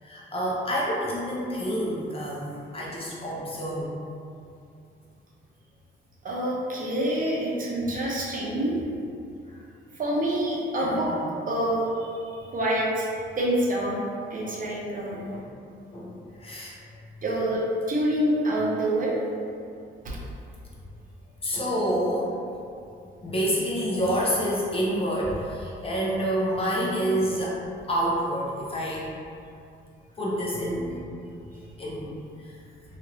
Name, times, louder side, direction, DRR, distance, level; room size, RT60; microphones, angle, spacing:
voice 1, 0.0-3.9 10.8-11.1 15.1-15.4 15.9-16.1 16.4-16.8 21.4-22.3 23.2-27.6 27.9-29.1 30.2-31.0 31.8-32.2, equal, 30° left, -5 dB, 0.7 m, -28 dB
voice 2, 6.2-8.8 10.0-11.1 11.5-12.1 12.5-13.1 13.4-14.0 14.3-15.2 17.2-19.1 20.0-20.2, right 1 dB, 45° right, -5 dB, 0.7 m, -26 dB
3.0 x 2.4 x 2.9 m, 2.5 s
cardioid pair, 90°, 20 cm